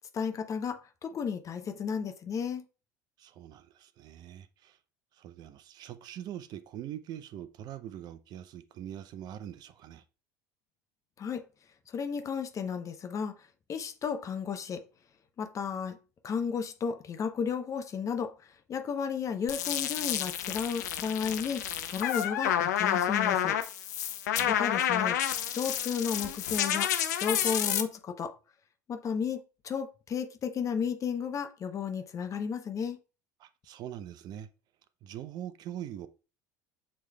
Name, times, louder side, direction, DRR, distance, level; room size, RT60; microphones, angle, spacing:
voice 1, 0.1-2.6 11.2-11.4 11.9-13.3 13.7-14.8 15.4-16.0 16.2-18.3 18.7-23.6 24.5-25.2 25.5-26.9 27.2-28.3 28.9-33.0, left 6 dB, 35° left, 0.7 m, -33 dB
voice 2, 3.2-4.8 5.2-10.0 24.3-24.7 33.4-34.5 35.0-36.1, right 11 dB, 50° right, 0.5 m, -43 dB
sound 1, 19.5-27.8, left 10 dB, 75° left, 0.6 m, -30 dB
7.2 x 3.2 x 2.3 m
hypercardioid pair, 75°, 9 cm